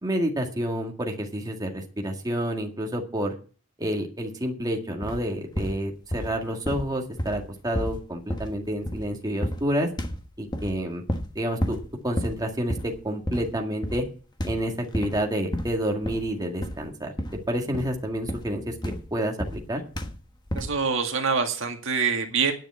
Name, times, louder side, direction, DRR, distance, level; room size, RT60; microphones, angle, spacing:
voice 1, 0.0-3.3 3.8-9.9 10.4-11.0 11.4-11.8 12.0-14.0 14.4-17.1 17.5-19.8, equal, 20° right, 1 dB, 2.0 m, -29 dB
sound 1, 5.0-5.3 5.5-6.4 6.6-9.1 9.4-9.7 10.0-10.8 11.1-11.3 11.6-11.9 12.2-12.4 12.7-13.0 13.3-13.6 13.8-14.1 14.4-15.2 15.5-16.3 16.6-16.9 17.2-17.5 17.7-19.7 19.9-20.2 20.5-20.8, equal, 20° left, 1.2 m, -31 dB
voice 2, 20.5-22.5, right 5 dB, 70° right, 4 dB, 2.0 m, -25 dB
10.5 x 7.0 x 8.5 m, 0.38 s
head